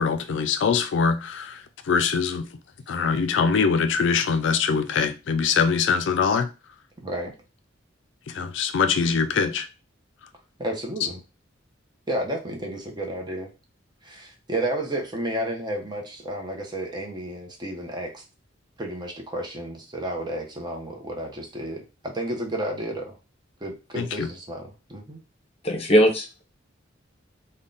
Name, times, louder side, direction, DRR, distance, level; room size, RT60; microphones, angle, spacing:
voice 1, 0.0-2.5 2.9-6.5 8.3-9.7 24.0-24.3, left 5 dB, 65° left, 0.4 m, -23 dB
voice 2, 7.0-7.3 10.6-11.2 12.1-13.5 14.0-18.2 18.8-23.1 23.6-25.2, right 1 dB, 20° right, 0.7 m, -31 dB
voice 3, 25.6-26.4, equal, 30° left, 0.9 m, -20 dB
3.6 x 2.2 x 3.8 m
head